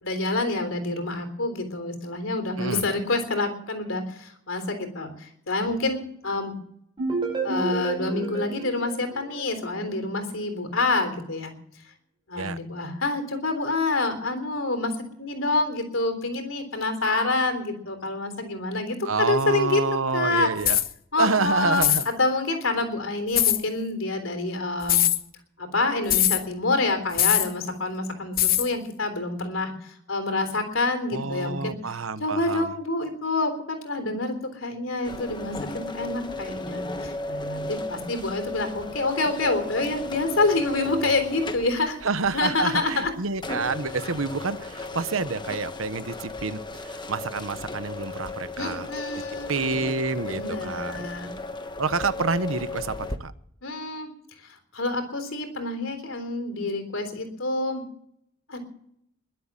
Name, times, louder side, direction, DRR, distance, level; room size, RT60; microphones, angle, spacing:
voice 1, 0.0-6.5 7.4-11.5 12.3-14.9 15.2-19.8 20.1-20.5 21.1-25.0 25.6-31.8 32.2-42.0 42.3-43.1 48.6-49.5 50.3-51.3 53.6-54.1 54.4-57.8 58.5-58.6, left 2 dB, 75° left, 3.7 m, -27 dB
sound 1, 7.0-9.9, right 4 dB, 25° right, 5.7 m, -31 dB
voice 2, 19.0-20.8 21.2-22.1 31.1-32.7 42.0-48.9 49.5-51.1 51.8-53.3, right 4 dB, 75° right, 1.1 m, -28 dB
sound 2, 20.6-20.9 21.8-22.1 23.3-23.6 24.8-25.2 26.1-26.4 27.2-27.5 28.4-28.7, left 12 dB, 45° left, 1.0 m, -21 dB
sound 3, 35.0-53.2, left 2 dB, 20° left, 1.1 m, -35 dB
22.0 x 8.0 x 7.5 m
head